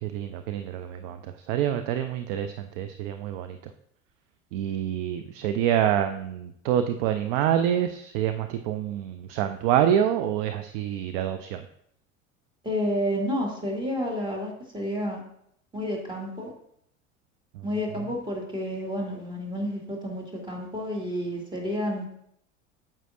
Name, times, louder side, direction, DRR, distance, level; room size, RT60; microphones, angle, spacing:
voice 1, 0.0-3.7 4.5-11.7 17.5-17.6, right 10 dB, 45° right, 9 dB, 0.5 m, -27 dB
voice 2, 12.6-15.2 15.7-16.5 17.6-22.1, equal, 10° right, -1 dB, 2.2 m, -30 dB
9.1 x 7.5 x 2.5 m, 0.71 s
figure-of-eight pair, 75°, 40 cm